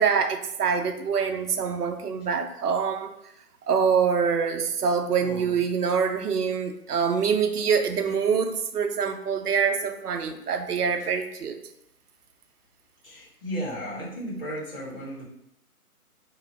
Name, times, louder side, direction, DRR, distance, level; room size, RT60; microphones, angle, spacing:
voice 1, 0.0-3.1 3.7-11.6, right 6 dB, 85° right, 7 dB, 0.7 m, -25 dB
voice 2, 5.2-5.6 13.0-15.2, equal, 40° left, -6 dB, 1.2 m, -35 dB
3.8 x 2.7 x 3.0 m, 0.78 s
hypercardioid pair, 170°, 45 cm